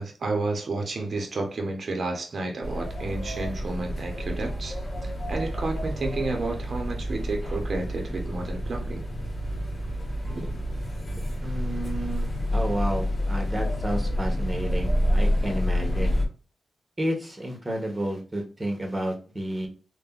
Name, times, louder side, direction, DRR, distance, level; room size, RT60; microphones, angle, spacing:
voice 1, 0.0-9.1 10.3-10.6, right 2 dB, 55° right, 0.7 m, -31 dB
sound 1, 2.6-16.3, equal, 40° left, 0.9 m, -28 dB
voice 2, 11.4-16.2 17.0-19.7, right 1 dB, 20° right, 1.1 m, -31 dB
3.4 x 2.1 x 2.3 m
cardioid pair, 80°, 0 cm